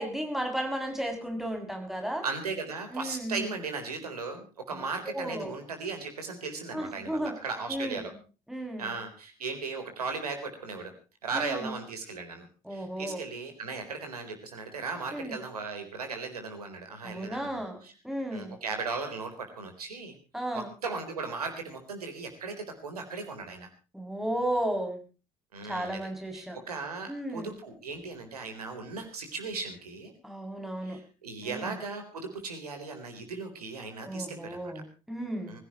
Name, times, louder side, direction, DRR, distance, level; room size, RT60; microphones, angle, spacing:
voice 1, 0.0-2.2 2.9-3.5 4.7-4.8 5.1-5.5 6.7-7.3 7.7-8.0 8.5-8.9 11.3-11.7 12.6-13.2 15.1-15.3 17.0-18.5 20.3-20.7 23.9-25.0 25.6-26.6 27.1-27.5 30.2-31.0 31.4-31.8 34.0-35.6, right 1 dB, ahead, 4 dB, 6.9 m, -34 dB
voice 2, 2.2-8.1 8.8-10.9 11.2-17.9 18.3-20.2 20.5-23.7 25.5-26.0 26.3-30.1 30.8-34.7 35.5-35.6, right 4 dB, 80° right, 6 dB, 4.0 m, -37 dB
24.5 x 16.5 x 3.0 m, 0.35 s
figure-of-eight pair, 55°, 19 cm